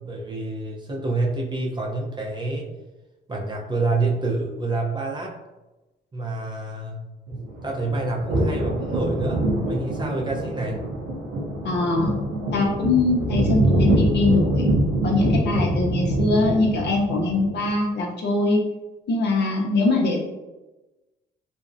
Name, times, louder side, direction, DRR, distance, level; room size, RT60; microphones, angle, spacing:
voice 1, 0.0-2.7 3.3-5.4 6.1-9.4 9.7-10.9, right 2 dB, 25° right, -2 dB, 0.5 m, -28 dB
sound 1, 7.3-17.7, right 1 dB, 85° right, 0.6 m, -24 dB
voice 2, 11.6-12.1 12.5-14.7 15.0-18.6 19.1-20.2, left 3 dB, 60° left, 0 dB, 0.6 m, -22 dB
2.5 x 2.0 x 2.4 m, 1.1 s
cardioid pair, 90°, 20 cm